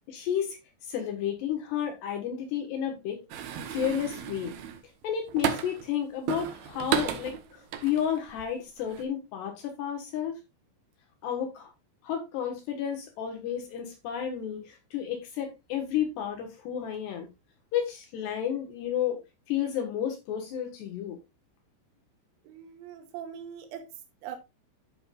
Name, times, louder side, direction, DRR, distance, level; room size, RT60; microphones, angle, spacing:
voice 1, 0.1-0.6 0.9-3.2 3.7-4.5 5.0-10.3 11.2-11.7 12.0-17.3 17.7-19.2 19.5-21.2, left 9 dB, 70° left, 3.4 m, -32 dB
sound 1, 3.3-5.9 6.3-8.4 8.8-9.0, right 9 dB, 70° right, 2.6 m, -33 dB
voice 2, 22.5-24.4, right 9 dB, 85° right, 3.5 m, -42 dB
14.0 x 5.8 x 2.5 m
omnidirectional pair, 5.3 m